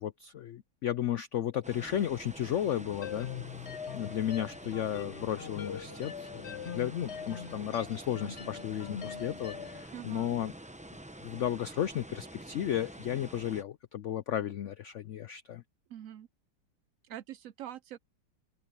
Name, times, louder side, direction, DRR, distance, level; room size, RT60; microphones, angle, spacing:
voice 1, 0.0-10.5 11.2-15.6, left 10 dB, 80° left, 0.6 m, -34 dB
sound 1, 1.6-13.6, right 1 dB, 10° right, 0.4 m, -47 dB
sound 2, 3.0-9.9, left 7 dB, 45° left, 1.0 m, -42 dB
voice 2, 9.9-10.3 15.9-16.3 17.0-18.0, right 11 dB, 75° right, 0.7 m, -44 dB
open air
omnidirectional pair, 1.9 m